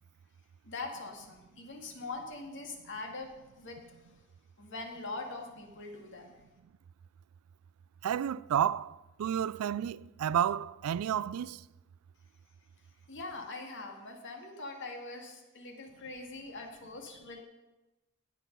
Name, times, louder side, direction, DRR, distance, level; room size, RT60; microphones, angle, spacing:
voice 1, 0.6-3.8 4.6-6.4 13.1-17.4, left 3 dB, 60° left, 2.0 m, -42 dB
voice 2, 8.0-11.6, right 9 dB, 80° right, 0.3 m, -31 dB
17.5 x 6.2 x 5.4 m
head